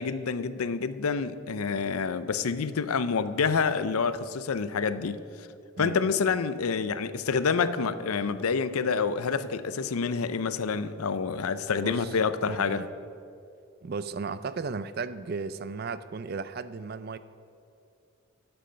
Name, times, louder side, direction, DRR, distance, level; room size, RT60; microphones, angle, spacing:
voice 1, 0.0-5.2 5.8-12.8, left 5 dB, 90° left, 13 dB, 0.5 m, -28 dB
voice 2, 5.8-6.1 11.8-12.2 12.5-12.9 13.8-17.2, right 4 dB, 45° right, 14 dB, 0.4 m, -35 dB
12.5 x 7.8 x 5.6 m, 2.5 s
head